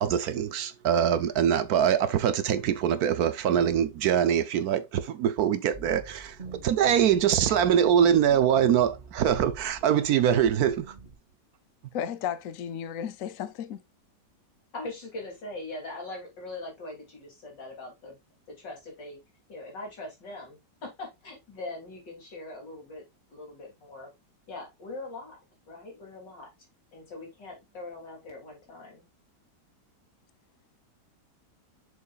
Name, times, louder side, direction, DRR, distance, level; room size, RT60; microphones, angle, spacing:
voice 1, 0.0-6.4 6.6-10.9, right 9 dB, 65° right, 1.1 m, -23 dB
sound 1, 5.7-11.1, right 4 dB, 30° right, 1.5 m, -43 dB
voice 2, 11.9-13.8, left 9 dB, 60° left, 1.0 m, -34 dB
voice 3, 14.7-18.2 18.6-19.2 19.5-23.0 23.3-24.1 24.5-25.4 25.7-26.5 26.9-29.0, left 2 dB, 85° left, 3.8 m, -41 dB
6.9 x 6.6 x 2.4 m
omnidirectional pair, 1.9 m